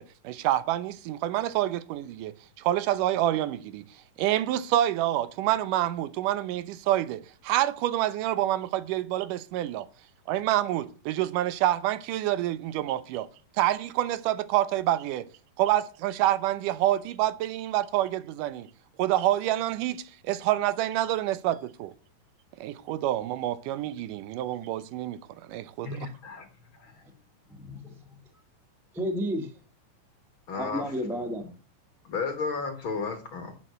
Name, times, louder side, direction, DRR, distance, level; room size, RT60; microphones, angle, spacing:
voice 1, 0.0-3.9 4.2-9.9 10.3-13.3 13.6-15.3 15.6-18.7 19.0-21.9 22.6-25.2 25.5-26.1, right 13 dB, 80° right, 2.3 m, -27 dB
voice 2, 25.8-26.5 26.8-26.9 30.5-30.8 32.1-33.5, left 4 dB, 50° left, 1.8 m, -33 dB
voice 3, 27.5-28.1 28.9-29.5 30.5-31.5, equal, ahead, 0.7 m, -32 dB
10.0 x 7.5 x 7.8 m
omnidirectional pair, 3.8 m